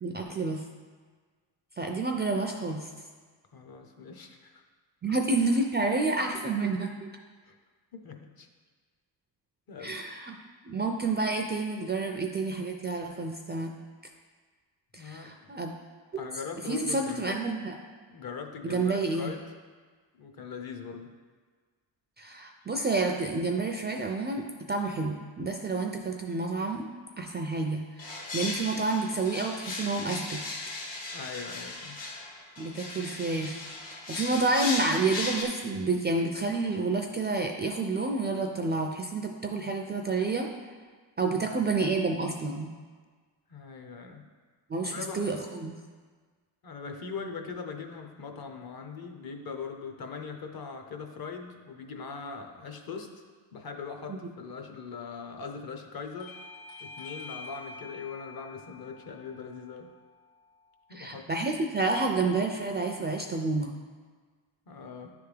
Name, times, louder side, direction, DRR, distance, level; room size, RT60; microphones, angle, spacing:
voice 1, 0.0-0.6 1.8-2.9 5.0-7.1 9.8-10.4 10.6-13.7 14.9-15.7 16.1-16.2 16.7-17.7 18.6-19.3 22.2-26.9 27.2-30.4 32.6-33.6 34.1-40.5 41.2-42.7 44.7-45.8 60.9-63.8, right 3 dB, 25° right, 3 dB, 0.3 m, -29 dB
voice 2, 3.5-4.6 5.1-5.2 7.5-7.6 7.9-8.5 9.7-10.0 14.9-15.6 16.2-17.4 18.1-19.4 20.2-21.1 31.1-32.0 41.3-41.6 43.5-44.2 44.8-45.4 46.6-53.1 53.5-56.4 56.8-59.9 60.9-61.3 64.7-65.1, left 5 dB, 50° left, 5 dB, 0.8 m, -41 dB
sound 1, 28.0-35.4, left 3 dB, 70° left, 1.3 m, -37 dB
Bell / Doorbell, 56.2-61.4, left 3 dB, 90° left, 0.7 m, -48 dB
10.0 x 3.5 x 3.3 m, 1.5 s
cardioid pair, 100°, 47 cm